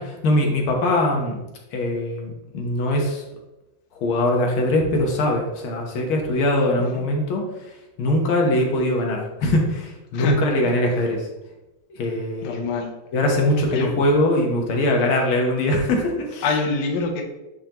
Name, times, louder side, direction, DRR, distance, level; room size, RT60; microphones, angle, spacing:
voice 1, 0.0-1.4 1.7-3.2 4.0-7.4 8.0-11.3 12.0-12.7 13.1-16.4, left 1 dB, 85° left, 1 dB, 1.9 m, -22 dB
voice 2, 12.4-12.9 13.7-13.9 16.4-17.2, left 4 dB, 65° left, 2 dB, 1.3 m, -25 dB
8.9 x 3.9 x 2.9 m, 1.0 s
omnidirectional pair, 2.2 m